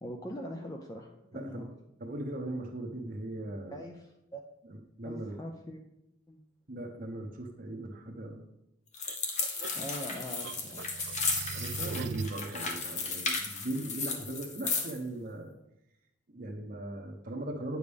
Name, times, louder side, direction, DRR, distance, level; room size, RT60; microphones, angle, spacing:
voice 1, 0.0-1.7 3.7-4.4 5.0-5.8 6.3-6.4 9.7-11.0, equal, 20° left, 2 dB, 0.5 m, -42 dB
voice 2, 1.3-1.7 2.0-3.8 4.6-5.4 6.7-8.5 11.5-15.5 16.3-17.8, right 1 dB, 45° right, 2 dB, 0.8 m, -39 dB
sound 1, 8.9-15.0, left 4 dB, 40° left, 1.0 m, -34 dB
sound 2, 9.0-12.5, right 5 dB, 65° right, 0.4 m, -40 dB
9.3 x 6.9 x 3.4 m, 0.87 s
head